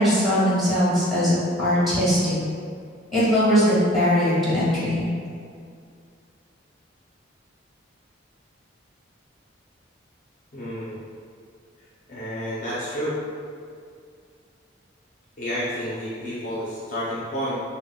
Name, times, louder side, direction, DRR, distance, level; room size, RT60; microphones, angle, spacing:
voice 1, 0.0-2.4 3.1-5.1, equal, ahead, -12 dB, 1.5 m, -20 dB
voice 2, 10.5-11.0 12.1-13.2 15.4-17.6, equal, 40° left, -8 dB, 0.6 m, -30 dB
6.3 x 2.2 x 2.3 m, 2.3 s
head